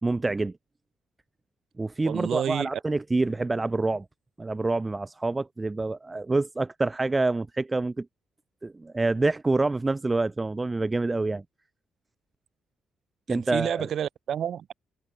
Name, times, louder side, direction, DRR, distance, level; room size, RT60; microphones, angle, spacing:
voice 1, 0.0-0.5 1.8-4.1 4.4-8.1 8.6-11.4 13.3-13.9, right 3 dB, 20° right, 2.4 m, -27 dB
voice 2, 2.0-2.7 13.3-14.7, right 9 dB, 65° right, 7.8 m, -29 dB
cardioid pair, 90°, 0 cm